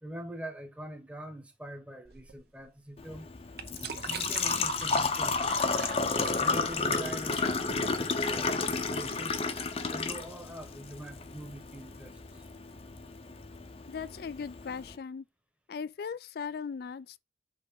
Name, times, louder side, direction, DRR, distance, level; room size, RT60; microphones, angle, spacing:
voice 1, 0.0-3.3 4.0-5.6 6.4-9.4 9.9-12.5, right 1 dB, 5° right, 1.1 m, -44 dB
sound 1, 2.0-9.1, right 6 dB, 60° right, 0.8 m, -44 dB
Engine / Trickle dribble / Fill (with liquid), 3.0-15.0, left 4 dB, 35° left, 0.7 m, -32 dB
voice 2, 13.9-15.2 15.7-17.2, left 6 dB, 55° left, 0.3 m, -38 dB
5.3 x 3.8 x 5.2 m
head